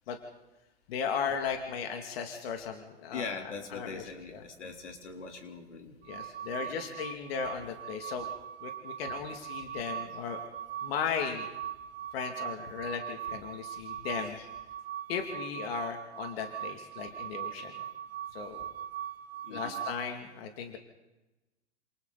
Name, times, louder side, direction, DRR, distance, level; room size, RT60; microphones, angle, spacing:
voice 1, 0.9-3.2 3.7-4.0 4.3-4.4 6.1-8.3 8.6-10.4 10.8-11.5 12.1-14.5 15.1-17.7 18.3-18.7 19.5-20.8, left 6 dB, 60° left, 4 dB, 2.8 m, -36 dB
voice 2, 3.1-5.9 6.6-6.7 19.5-19.8, left 4 dB, 80° left, 3 dB, 3.9 m, -41 dB
sound 1, 6.0-20.1, right 10 dB, 60° right, 1.2 m, -40 dB
29.0 x 27.5 x 4.2 m, 1.0 s
hypercardioid pair, 110°, 35 cm